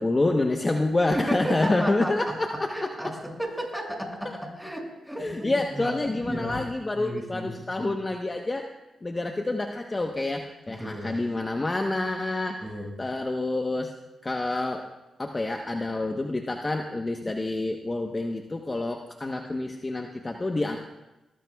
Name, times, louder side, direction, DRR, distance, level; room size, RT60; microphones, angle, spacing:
voice 1, 0.0-3.1 4.2-4.4 5.2-8.7 9.0-12.6 13.0-13.9 14.2-14.8 15.2-20.8, left 2 dB, 30° left, 3 dB, 1.0 m, -28 dB
voice 2, 1.1-2.2 2.7-5.9 6.2-6.6 6.9-8.0 10.8-11.1 12.6-12.9, right 1 dB, 5° right, 0 dB, 6.1 m, -34 dB
20.5 x 20.0 x 2.3 m, 1.0 s
cardioid pair, 55°, 0 cm